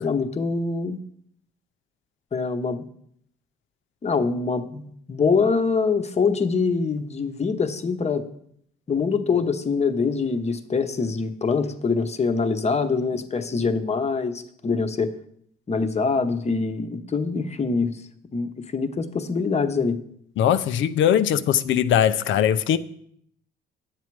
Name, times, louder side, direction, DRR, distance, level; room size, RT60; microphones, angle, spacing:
voice 1, 0.0-1.0 2.3-2.8 4.0-8.2 8.9-15.1 15.7-18.0 18.3-20.0, left 4 dB, 35° left, 1.0 m, -24 dB
voice 2, 20.4-22.8, left 9 dB, 75° left, 0.6 m, -20 dB
10.0 x 7.4 x 4.7 m
cardioid pair, 90°, 20 cm